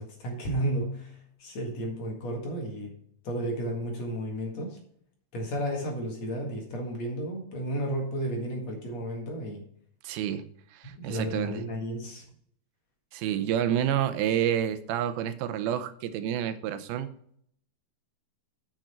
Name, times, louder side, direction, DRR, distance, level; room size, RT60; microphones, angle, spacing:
voice 1, 0.0-2.9 3.2-4.8 5.3-9.6 10.8-12.2, right 1 dB, 50° left, 1 dB, 2.8 m, -33 dB
voice 2, 10.0-10.4 10.7-11.6 13.1-17.1, right 10 dB, 90° right, 11 dB, 2.7 m, -29 dB
9.1 x 7.5 x 4.3 m, 0.65 s
omnidirectional pair, 4.2 m